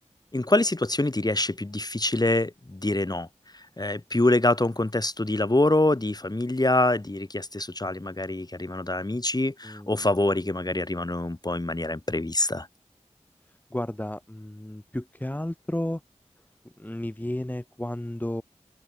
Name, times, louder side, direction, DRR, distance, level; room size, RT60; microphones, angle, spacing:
voice 1, 0.3-3.3 3.5-12.7, left 2 dB, 30° left, 2.1 m, -25 dB
voice 2, 9.6-10.0 13.7-16.0 16.8-18.4, left 1 dB, 15° left, 0.9 m, -32 dB
open air
wide cardioid pair, 45°, 12 cm